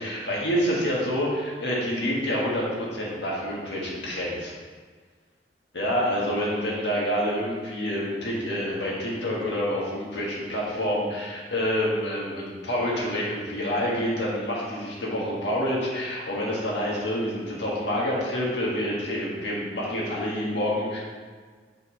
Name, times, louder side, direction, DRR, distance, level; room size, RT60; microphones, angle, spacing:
voice 1, 0.0-4.5 5.7-21.0, equal, 80° left, -4 dB, 1.7 m, -27 dB
7.7 x 5.3 x 3.1 m, 1.5 s
head